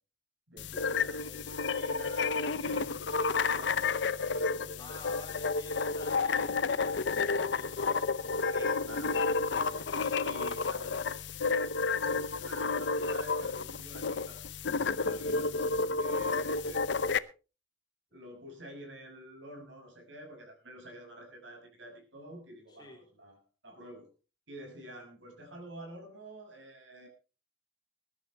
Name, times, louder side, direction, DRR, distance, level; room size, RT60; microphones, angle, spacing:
voice 1, 0.5-5.1 8.4-9.9 10.2-10.9 11.9-14.6 14.9-16.8 18.1-24.1 24.5-27.1, right 1 dB, 80° right, 4 dB, 6.3 m, -49 dB
sound 1, 0.6-17.2, left 4 dB, 70° left, 0.7 m, -31 dB
voice 2, 4.8-8.9 10.0-11.3 22.7-23.0, left 2 dB, 20° left, 1 dB, 4.2 m, -52 dB
21.5 x 11.5 x 3.4 m, 0.33 s
head